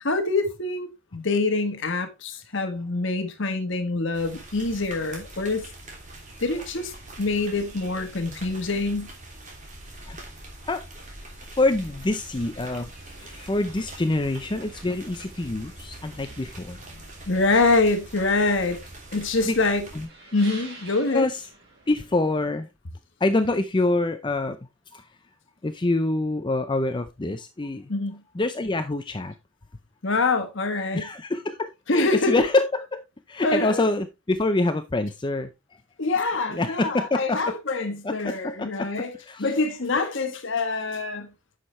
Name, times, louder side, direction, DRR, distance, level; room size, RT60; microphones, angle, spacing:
voice 1, 0.0-5.6 6.4-6.9 7.2-9.1 17.3-18.8 19.1-19.8 20.3-21.2 27.9-28.2 30.0-31.0 31.9-32.4 33.4-33.8 36.0-39.1 39.4-41.3, left 3 dB, 65° left, 1.3 m, -25 dB
sound 1, 4.1-20.1, right 1 dB, 40° right, 2.9 m, -43 dB
voice 2, 11.6-12.9 13.2-16.8 19.4-19.6 19.9-20.1 21.1-21.5 21.9-22.7 23.2-24.6 24.9-25.0 25.6-27.9 28.3-29.3 30.9-33.0 33.3-35.5 36.5-37.4 38.0-38.9 39.1-39.5, left 2 dB, 25° left, 0.5 m, -26 dB
sound 2, 13.0-22.5, right 2 dB, 55° right, 4.7 m, -50 dB
9.8 x 6.6 x 3.2 m
head